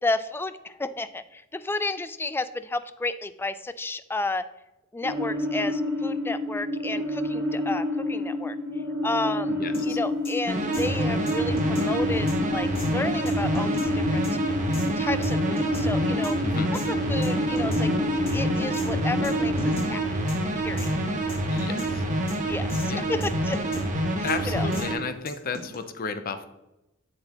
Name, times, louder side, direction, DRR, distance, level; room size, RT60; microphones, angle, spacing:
voice 1, 0.0-4.5 4.9-8.6 9.0-9.5 9.8-14.2 15.0-16.4 16.7-17.9 18.3-20.2 20.5-20.9 22.5-23.6 24.2-24.7, left 2 dB, 10° left, 13 dB, 0.3 m, -32 dB
sound 1, 5.0-19.8, left 1 dB, 60° right, 2.0 m, -29 dB
voice 2, 9.5-10.0 16.4-16.7 21.4-22.0 22.9-23.1 24.2-26.4, left 5 dB, 45° left, 9 dB, 0.6 m, -33 dB
sound 2, 9.7-9.9 10.2-10.3 10.7-10.9 11.3-11.9 12.3-12.4 12.8-12.9 13.3-13.9 14.2-14.3 14.7-14.9 15.2-15.9 16.2-16.3 16.7-16.9 17.2-17.9 18.3-18.4 18.7-18.9 19.2-19.3 19.6-19.9 20.3-20.4 20.8-20.9 21.3-21.9 22.3-22.4 22.7-22.9 23.2-23.8 24.3-24.4 24.7-24.8 25.3-25.8, left 1 dB, 25° left, 1.9 m, -38 dB
sound 3, 10.5-25.0, right 1 dB, 40° right, 1.3 m, -27 dB
7.7 x 7.6 x 3.0 m, 0.96 s
head